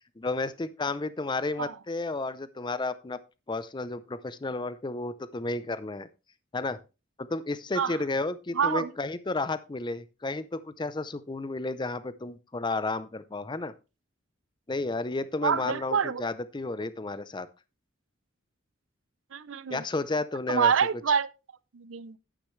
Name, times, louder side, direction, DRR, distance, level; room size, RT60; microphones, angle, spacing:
voice 1, 0.2-3.2 3.5-6.1 6.5-6.8 7.2-13.7 14.7-17.5 19.7-20.7, left 3 dB, 20° left, 0.5 m, -32 dB
voice 2, 8.5-8.9 15.4-16.3 19.3-19.8 20.5-21.3 21.7-22.2, right 7 dB, 70° right, 0.6 m, -26 dB
10.0 x 9.8 x 3.2 m
head